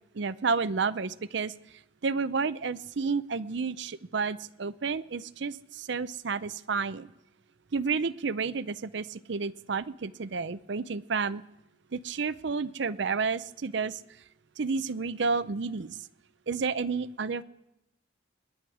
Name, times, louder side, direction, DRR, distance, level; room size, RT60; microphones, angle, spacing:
voice 1, 0.1-1.5 2.0-7.1 7.7-11.4 11.9-14.0 14.6-16.0 16.5-17.4, right 4 dB, 60° right, 15 dB, 0.6 m, -31 dB
27.0 x 11.0 x 4.8 m, 0.92 s
head